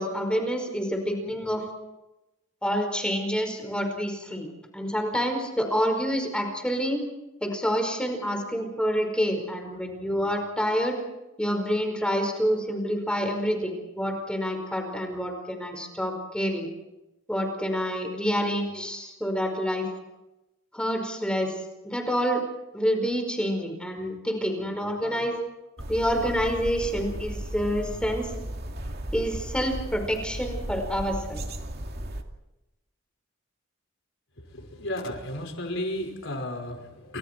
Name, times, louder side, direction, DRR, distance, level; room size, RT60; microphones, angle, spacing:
voice 1, 0.0-1.6 2.6-4.5 4.7-7.0 7.4-11.0 11.4-16.7 17.3-19.9 20.7-21.6 21.8-22.4 22.7-25.5 25.9-28.3 29.1-31.4, equal, 5° left, 4 dB, 5.0 m, -27 dB
sound 1, 25.8-32.2, right 1 dB, 50° right, 2.5 m, -35 dB
voice 2, 34.4-37.2, left 1 dB, 65° left, 3 dB, 5.5 m, -33 dB
29.5 x 27.5 x 4.6 m, 0.98 s
head